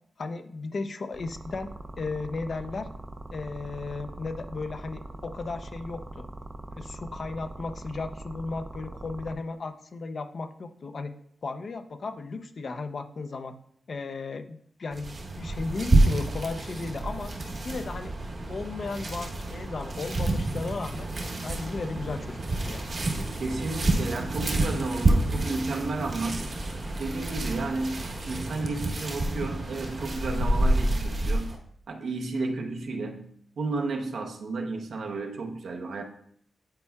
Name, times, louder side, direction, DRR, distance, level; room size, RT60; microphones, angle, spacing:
voice 1, 0.2-2.9 3.3-6.3 6.8-11.1 11.4-13.5 13.9-17.4 17.6-18.2 18.5-21.1 21.4-22.9, left 3 dB, 50° left, 7 dB, 0.6 m, -35 dB
sound 1, 1.1-9.3, right 2 dB, 25° right, 0.5 m, -42 dB
sound 2, 14.9-31.6, right 2 dB, 45° right, 1.0 m, -28 dB
voice 2, 23.3-26.6 27.0-31.6 31.9-36.0, right 3 dB, 70° right, 3 dB, 0.8 m, -32 dB
9.7 x 4.5 x 2.3 m, 0.65 s
wide cardioid pair, 125°, 0 cm